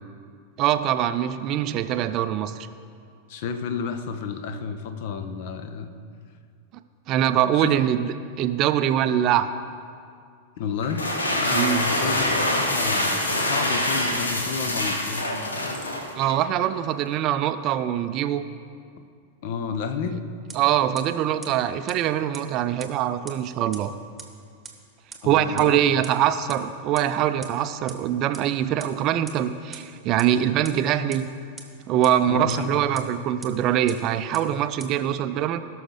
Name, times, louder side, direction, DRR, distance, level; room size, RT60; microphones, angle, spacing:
voice 1, 0.6-2.5 7.1-9.5 11.5-11.9 16.2-18.4 20.6-23.9 25.2-31.3 31.9-35.6, right 11 dB, 40° right, 11 dB, 0.4 m, -23 dB
voice 2, 3.3-5.9 7.6-7.7 10.6-11.0 11.3-15.3 19.4-20.2 25.2-25.8 32.2-32.7, left 6 dB, 50° left, 9 dB, 0.7 m, -31 dB
sound 1, 10.8-16.4, left 1 dB, 75° left, 1.1 m, -25 dB
sound 2, 20.5-20.6 21.0-21.1 21.4-21.5 21.9-22.0 22.3-22.4 22.8-22.9 23.3-23.4 23.7-23.8 24.2-24.3 24.6-24.7 25.1-25.2 25.6-25.7 26.0-26.1 26.5-26.6 27.0-27.1 27.4-27.5 27.9-28.0 28.3-28.4 28.8-28.9 29.3-29.4 29.7-29.8 30.2-30.3 30.6-30.7 31.1-31.2 31.6-31.7 32.0-32.1 32.5-32.6 32.9-33.0 33.4-33.5 33.9-34.0 34.3-34.4 34.8-34.9, right 5 dB, 10° right, 1.2 m, -39 dB
17.5 x 6.2 x 3.8 m, 2.2 s
figure-of-eight pair, 90°, 0 cm